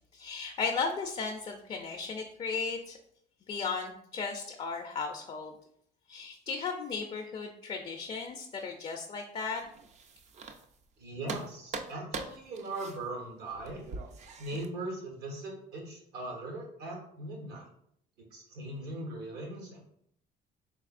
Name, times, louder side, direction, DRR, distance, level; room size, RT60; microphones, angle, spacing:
voice 1, 0.1-3.0 3.5-5.5 6.1-9.6, left 5 dB, 35° left, 2 dB, 0.4 m, -35 dB
sound 1, 9.6-10.9 11.3-14.7, right 4 dB, 45° right, 0.4 m, -42 dB
voice 2, 11.0-13.8 14.4-17.7 18.2-19.8, right 2 dB, 75° right, 0 dB, 1.2 m, -40 dB
3.5 x 3.4 x 2.4 m, 0.69 s
cardioid pair, 110°, 17 cm